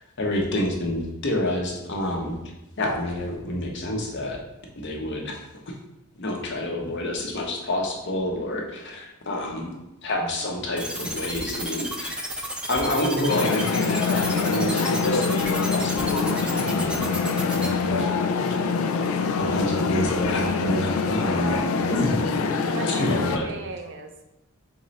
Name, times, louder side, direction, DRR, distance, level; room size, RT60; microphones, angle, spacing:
voice 1, 0.2-2.4 2.8-4.4 4.8-5.4 6.2-9.7 10.0-12.3 12.7-17.1 17.5-18.1 19.4-21.6 21.9-22.2 22.9-23.5, left 1 dB, 55° left, 0 dB, 0.8 m, -28 dB
voice 2, 9.3-9.6 17.9-18.3 22.7-24.2, right 4 dB, 55° right, 5 dB, 0.5 m, -38 dB
sound 1, 10.8-17.7, right 1 dB, 5° right, 0.3 m, -32 dB
sound 2, 13.3-23.4, left 4 dB, 70° left, 0.4 m, -24 dB
3.7 x 3.1 x 4.0 m, 0.94 s
head